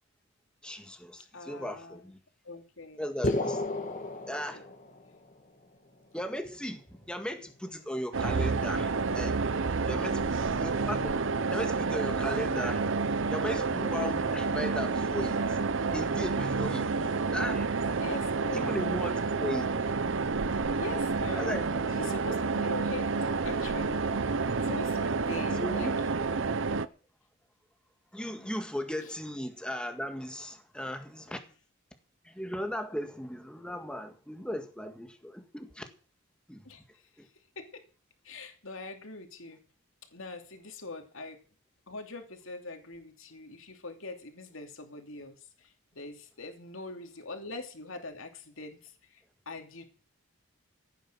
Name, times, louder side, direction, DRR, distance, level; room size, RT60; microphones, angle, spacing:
voice 1, 0.6-2.2 3.0-3.6 4.3-4.6 6.1-9.4 9.9-11.2 11.5-12.8 13.3-15.6 15.9-16.9 17.3-17.7 18.5-19.7 21.4-21.9 25.6-26.0 28.1-31.4 32.3-35.8 36.5-36.6 37.2-37.3, equal, 5° left, 1.8 m, -37 dB
voice 2, 1.3-2.1 2.4-3.0 4.1-4.2 4.5-4.6 10.0-10.3 16.8-17.1 18.0-18.8 20.7-24.1 24.6-25.9 28.4-28.6 29.0-29.1 31.3-31.4 36.6-37.0 37.6-37.8 38.2-39.6 40.1-41.4 41.9-49.8, left 2 dB, 70° left, 2.7 m, -43 dB
sound 1, 3.2-5.2, left 2 dB, 35° left, 1.8 m, -32 dB
sound 2, 8.1-26.9, right 4 dB, 60° right, 0.7 m, -29 dB
15.5 x 9.3 x 6.2 m
head